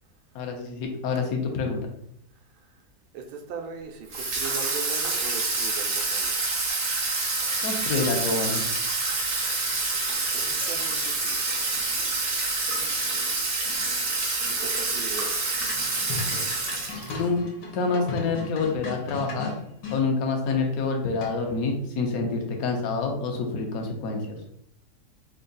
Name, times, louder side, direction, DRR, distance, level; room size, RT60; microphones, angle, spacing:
voice 1, 0.3-1.8 7.6-8.6 17.1-17.4 17.7-19.5 19.9-24.4, left 4 dB, 65° left, 2 dB, 1.1 m, -27 dB
voice 2, 3.1-6.3 9.8-11.6 14.6-15.3, right 5 dB, 80° right, 3 dB, 1.2 m, -39 dB
Water tap faucet / Sink (filling or washing), 4.1-17.3, right 3 dB, 50° right, 0.6 m, -27 dB
sound 1, 15.7-20.0 21.2-21.6, left 3 dB, 85° left, 1.6 m, -36 dB
3.5 x 2.3 x 3.8 m, 0.73 s
omnidirectional pair, 1.8 m